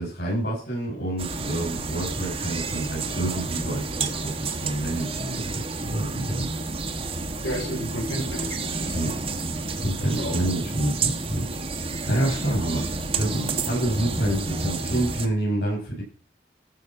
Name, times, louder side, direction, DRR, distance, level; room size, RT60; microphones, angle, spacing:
voice 1, 0.0-6.4 8.9-9.1 9.8-11.4 12.0-16.0, right 1 dB, 65° left, -7 dB, 7.3 m, -28 dB
sound 1, 1.2-15.3, right 3 dB, 30° right, 1.2 m, -30 dB
voice 2, 7.4-9.2 10.0-10.4 12.2-12.3, equal, 90° left, 1 dB, 5.3 m, -32 dB
14.5 x 6.0 x 6.3 m, 0.41 s
head